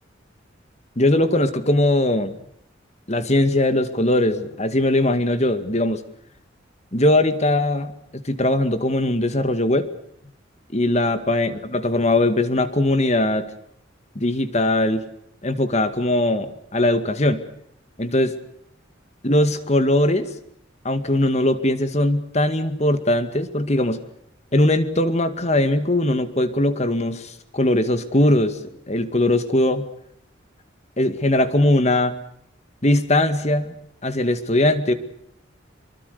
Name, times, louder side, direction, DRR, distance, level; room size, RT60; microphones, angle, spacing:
voice 1, 1.0-2.3 3.1-6.0 6.9-7.9 8.2-9.9 10.7-13.5 14.2-15.0 15.4-17.4 18.0-18.4 19.2-20.3 20.8-24.0 24.5-28.6 28.9-29.9 31.0-32.1 32.8-33.8 34.0-34.9, left 1 dB, 35° left, 11 dB, 2.1 m, -20 dB
25.5 x 23.5 x 6.8 m, 0.70 s
head